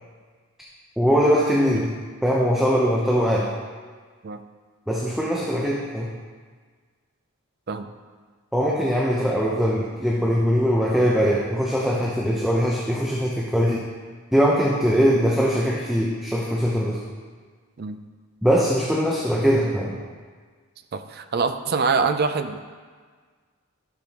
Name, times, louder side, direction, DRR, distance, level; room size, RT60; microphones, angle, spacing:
voice 1, 1.0-1.9 2.2-3.5 4.9-6.1 8.5-13.8 14.3-17.0 18.4-20.0, equal, ahead, -5 dB, 0.7 m, -21 dB
voice 2, 20.9-22.6, right 4 dB, 45° right, 8 dB, 0.4 m, -24 dB
12.0 x 6.8 x 2.9 m, 1.5 s
head